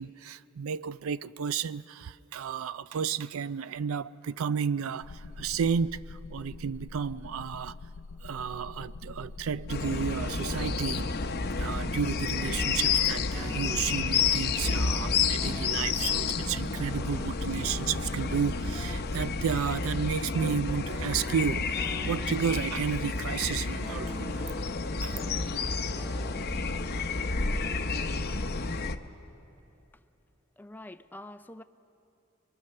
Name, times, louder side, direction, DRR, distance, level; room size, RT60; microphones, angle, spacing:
voice 1, 0.0-7.8 8.2-11.1 11.6-24.4 25.0-25.2, right 7 dB, 85° right, 0.4 m, -32 dB
sound 1, 5.0-20.2, left 3 dB, 75° left, 0.4 m, -44 dB
sound 2, 9.7-29.0, left 4 dB, 50° left, 0.7 m, -30 dB
sound 3, 12.3-28.2, equal, 10° right, 1.7 m, -48 dB
voice 2, 30.6-31.6, left 1 dB, 10° left, 0.4 m, -45 dB
24.5 x 22.5 x 6.6 m
head